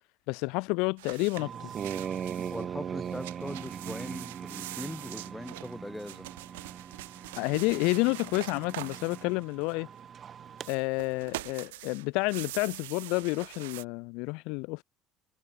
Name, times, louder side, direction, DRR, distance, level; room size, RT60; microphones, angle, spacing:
voice 1, 0.3-1.5 7.4-9.9 10.7-14.8, left 28 dB, 65° left, 0.6 m, -29 dB
sound 1, 1.0-2.6 3.0-10.0 10.5-13.8, right 19 dB, 75° right, 1.5 m, -44 dB
sound 2, 1.4-10.7, right 8 dB, 40° right, 0.5 m, -40 dB
voice 2, 2.5-6.3, left 1 dB, 5° left, 2.0 m, -40 dB
hypercardioid pair, 65°, 0 cm